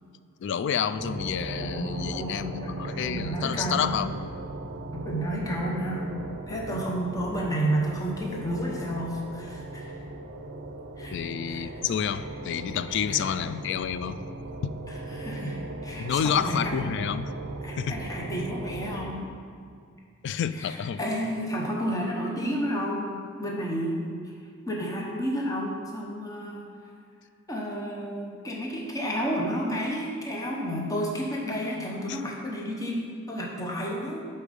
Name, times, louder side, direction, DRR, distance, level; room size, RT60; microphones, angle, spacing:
voice 1, 0.4-4.3 11.1-14.2 14.6-14.8 16.0-17.3 17.8-18.0 20.2-21.0 32.1-32.2, left 8 dB, 60° left, 13 dB, 0.3 m, -29 dB
sound 1, 1.0-19.1, right 2 dB, 50° right, 0.6 m, -38 dB
voice 2, 1.6-4.0 4.9-6.1 6.5-9.9 11.0-11.2 11.5-11.6 13.1-13.2 14.9-16.9 17.6-19.3 20.5-24.2 24.7-26.7 27.5-34.2, equal, 15° left, -2 dB, 0.9 m, -31 dB
8.4 x 4.4 x 5.2 m, 2.3 s
head